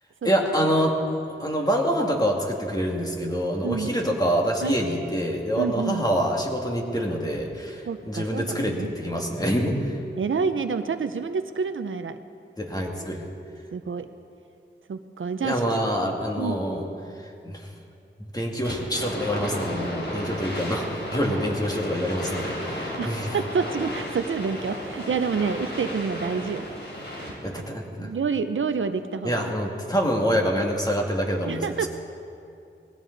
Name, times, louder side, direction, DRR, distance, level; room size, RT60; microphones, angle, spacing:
voice 1, 0.2-1.0 1.4-10.0 12.6-13.2 15.4-16.8 17.2-17.7 18.2-23.4 27.4-28.1 29.2-31.9, equal, 20° left, 0 dB, 2.3 m, -26 dB
voice 2, 3.6-3.9 4.6-4.7 5.6-6.1 7.9-8.9 10.2-12.2 13.7-14.1 14.9-15.6 16.4-16.5 23.0-26.7 27.5-27.6 28.0-29.4 31.5-31.9, right 5 dB, 80° right, 10 dB, 0.7 m, -28 dB
sound 1, 18.6-27.5, equal, 60° left, 4.1 m, -33 dB
19.5 x 16.0 x 4.0 m, 2.5 s
wide cardioid pair, 60°, 20 cm